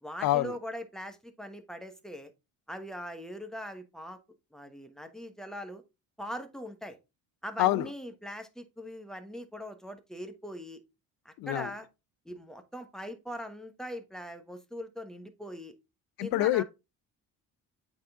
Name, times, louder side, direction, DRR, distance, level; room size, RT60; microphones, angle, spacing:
voice 1, 0.0-2.3 2.7-4.2 4.5-5.8 6.2-7.0 7.4-10.8 11.2-11.9 12.2-15.7 16.2-16.6, equal, ahead, 1.2 m, -41 dB
voice 2, 16.2-16.6, left 15 dB, 75° left, 0.6 m, -25 dB
8.5 x 3.8 x 3.6 m
cardioid pair, 95°, 35 cm